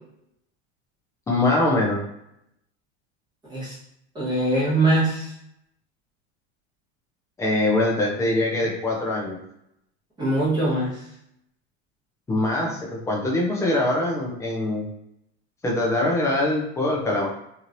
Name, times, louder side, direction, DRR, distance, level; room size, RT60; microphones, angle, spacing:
voice 1, 1.3-2.0 7.4-9.4 12.3-14.8 15.6-17.3, left 2 dB, 10° left, -2 dB, 0.4 m, -23 dB
voice 2, 4.1-5.3 10.2-11.0, right 2 dB, 10° right, -9 dB, 1.2 m, -22 dB
3.1 x 2.9 x 2.5 m, 0.78 s
supercardioid pair, 160°, 33 cm